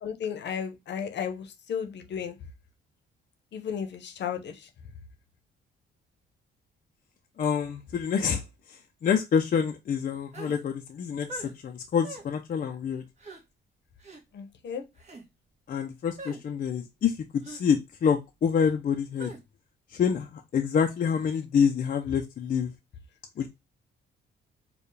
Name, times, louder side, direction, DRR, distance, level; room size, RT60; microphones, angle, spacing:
voice 1, 0.0-2.3 3.5-4.7 14.3-14.8, left 7 dB, 60° left, 0.8 m, -34 dB
voice 2, 7.4-8.4 8.7-13.0 15.7-19.3 19.9-22.7 23.4-23.5, left 7 dB, 45° left, 0.5 m, -27 dB
sound 1, 10.3-10.6 11.3-11.5 12.0-12.3 13.2-13.4 14.0-14.2 15.0-15.2 16.2-16.4 17.4-17.6 19.2-19.4, right 2 dB, 35° right, 1.4 m, -42 dB
4.5 x 2.3 x 3.2 m
cardioid pair, 90°, 20 cm